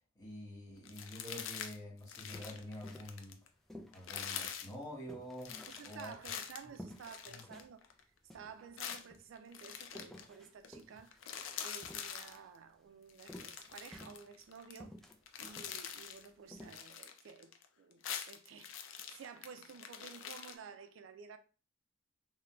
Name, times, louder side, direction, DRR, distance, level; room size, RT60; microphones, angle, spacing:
voice 1, 0.1-3.4 3.9-6.1 7.3-7.4, equal, 20° left, 1.5 m, -47 dB
sound 1, 0.8-1.8 2.0-3.5 3.9-4.7 5.4-8.0 8.8-10.3 10.6-10.8 11.1-12.4 13.1-14.8 15.1-16.3 16.6-17.6 17.9-20.5, left 8 dB, 85° left, 0.4 m, -45 dB
sound 2, 2.3-3.3 3.7-6.3 6.8-7.7 8.0-8.1 8.3-9.2 9.9-12.5 13.3-14.5 14.8-15.7 16.1-16.2 16.5-16.8, left 1 dB, ahead, 0.4 m, -53 dB
voice 2, 5.7-7.8 8.3-11.1 11.6-15.0 15.4-21.4, right 6 dB, 85° right, 0.4 m, -53 dB
3.7 x 2.1 x 2.3 m
head